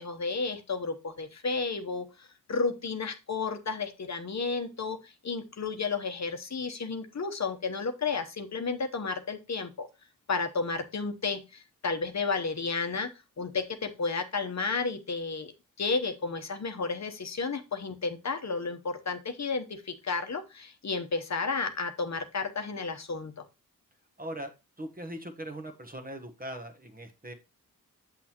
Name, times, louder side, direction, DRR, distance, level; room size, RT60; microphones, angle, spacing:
voice 1, 0.0-9.9 10.3-13.1 13.4-15.5 15.8-23.4, left 4 dB, 50° left, 6 dB, 1.0 m, -32 dB
voice 2, 24.2-24.5 24.8-27.3, right 1 dB, 25° right, 5 dB, 1.2 m, -40 dB
7.5 x 6.3 x 2.9 m, 0.27 s
wide cardioid pair, 85°, 35 cm